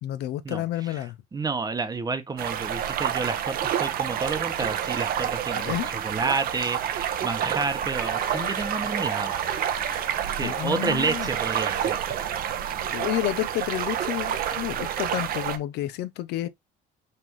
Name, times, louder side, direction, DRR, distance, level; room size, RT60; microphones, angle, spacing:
voice 1, 0.0-1.2 5.5-5.9 8.3-8.6 9.9-10.1 10.4-11.3 12.6-16.5, left 14 dB, 80° left, 0.5 m, -30 dB
voice 2, 1.3-9.4 10.3-12.3, right 4 dB, 20° right, 0.8 m, -30 dB
sound 1, 2.4-15.6, right 9 dB, 60° right, 0.6 m, -28 dB
Wind instrument woodwind instrument, 7.9-12.8, left 3 dB, 20° left, 0.8 m, -45 dB
5.6 x 2.5 x 3.0 m
cardioid pair, 110°, 17 cm